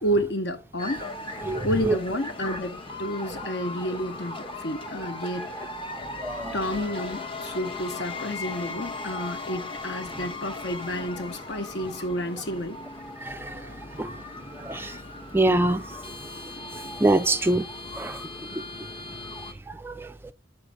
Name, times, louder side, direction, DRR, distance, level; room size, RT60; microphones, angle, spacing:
voice 1, 0.0-1.3 1.6-5.7 6.5-12.8, equal, 65° left, 1.0 m, -30 dB
sound 1, 0.8-19.5, left 2 dB, 30° left, 0.9 m, -38 dB
voice 2, 1.4-2.0 6.2-6.5 13.2-13.7 14.0-14.1 14.5-15.0 15.3-15.9 17.0-17.7 17.9-18.2 18.6-18.7 19.7-20.2, right 2 dB, 10° right, 0.3 m, -25 dB
6.4 x 4.5 x 6.2 m
head